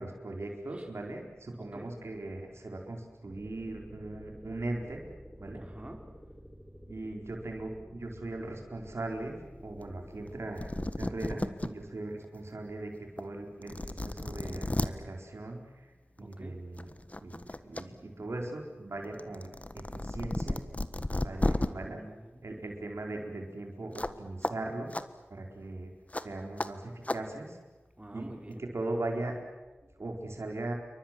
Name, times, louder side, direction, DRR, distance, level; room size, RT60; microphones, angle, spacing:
voice 1, 0.0-5.0 5.4-5.6 6.9-15.9 16.2-16.9 17.2-19.5 20.0-20.6 21.2-22.0 22.4-24.9 25.3-25.9 26.2-27.6 28.1-28.3 28.6-29.3 30.0-30.7, right 2 dB, 85° right, 2 dB, 4.3 m, -39 dB
sound 1, 3.2-11.9, equal, 10° left, 5.9 m, -50 dB
voice 2, 5.5-6.0 16.2-16.6 21.3-22.4 28.0-28.7, right 1 dB, 25° right, 4 dB, 4.9 m, -48 dB
sound 2, 10.3-10.4 10.6-11.7 12.2-12.3 13.2-13.3 13.6-14.9 16.2-16.4 16.8-17.8 18.2-21.7 24.0-24.2 24.4-24.5 24.9-25.0 26.1-26.2 26.6-26.7 27.1-27.2, left 1 dB, 30° left, 1.5 m, -33 dB
29.0 x 24.0 x 7.5 m, 1.2 s
wide cardioid pair, 55°, 4 cm